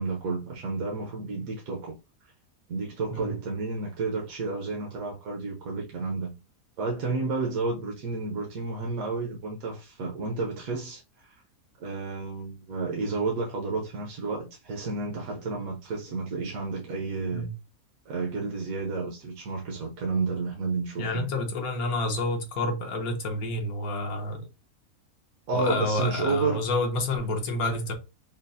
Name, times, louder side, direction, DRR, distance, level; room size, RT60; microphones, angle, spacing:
voice 1, 0.0-1.9 2.2-2.3 2.7-6.3 6.8-11.4 11.8-17.5 18.1-21.3 25.5-26.6, right 3 dB, 75° right, 1.2 m, -31 dB
voice 2, 21.0-24.5 25.5-27.9, left 2 dB, 85° left, 1.4 m, -29 dB
5.7 x 2.0 x 2.6 m
omnidirectional pair, 1.5 m